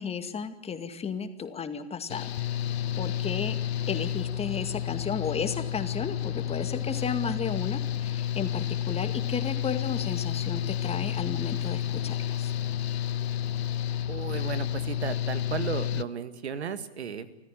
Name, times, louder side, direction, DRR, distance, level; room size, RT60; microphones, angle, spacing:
voice 1, 0.0-2.3 3.0-3.6 3.9-12.5, left 6 dB, 20° left, 9 dB, 2.2 m, -33 dB
Engine / Mechanical fan, 2.1-16.0, left 10 dB, 70° left, 1.2 m, -30 dB
voice 2, 14.1-17.4, right 6 dB, 75° right, 14 dB, 2.1 m, -34 dB
29.5 x 14.5 x 9.2 m, 0.97 s
hypercardioid pair, 105°, 33 cm